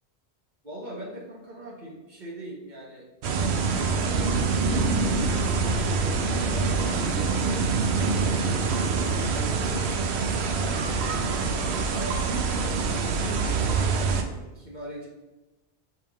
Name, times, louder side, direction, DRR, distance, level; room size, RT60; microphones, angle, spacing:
voice 1, 0.6-3.1 3.7-8.3 8.8-11.2 11.9-12.8 13.1-15.1, right 1 dB, 45° right, -2 dB, 1.5 m, -41 dB
sound 1, 3.2-14.2, right 4 dB, 85° right, 0.9 m, -25 dB
5.4 x 3.6 x 5.3 m, 1.1 s
omnidirectional pair, 1.1 m